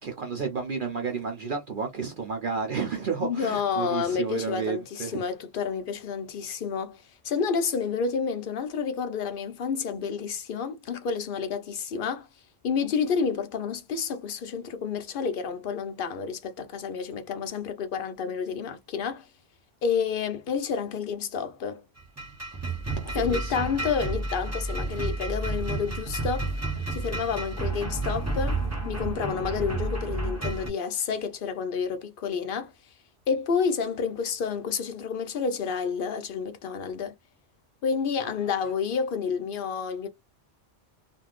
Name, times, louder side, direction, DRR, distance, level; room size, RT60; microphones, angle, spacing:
voice 1, 0.0-5.2 23.0-23.6 38.2-38.3, right 5 dB, 50° right, 0.7 m, -32 dB
voice 2, 3.2-12.3 12.6-19.3 19.8-21.8 23.1-26.5 26.9-28.6 28.8-32.7 33.3-37.1 37.8-40.1, left 6 dB, 60° left, 0.6 m, -29 dB
sound 1, 22.0-30.7, right 2 dB, 15° right, 0.7 m, -31 dB
3.3 x 2.5 x 2.4 m
omnidirectional pair, 1.3 m